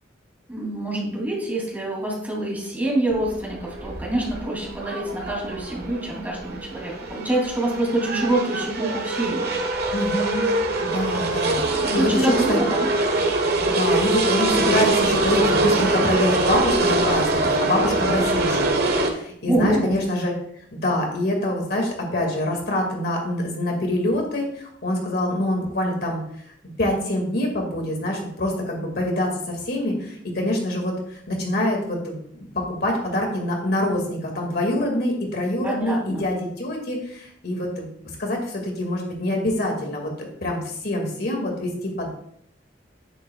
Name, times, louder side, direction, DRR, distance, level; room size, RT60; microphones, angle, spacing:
voice 1, 0.5-9.6 11.6-12.9 19.4-20.0 35.6-36.2, right 1 dB, 10° right, -3 dB, 3.0 m, -26 dB
sound 1, 3.1-19.1, right 2 dB, 55° right, 1.4 m, -23 dB
voice 2, 9.9-10.5 10.8-11.6 11.9-12.6 13.7-20.3 20.7-26.2 26.8-37.9 38.2-41.7 42.0-42.1, left 1 dB, 55° left, 1 dB, 2.2 m, -25 dB
10.0 x 9.9 x 2.4 m, 0.68 s
head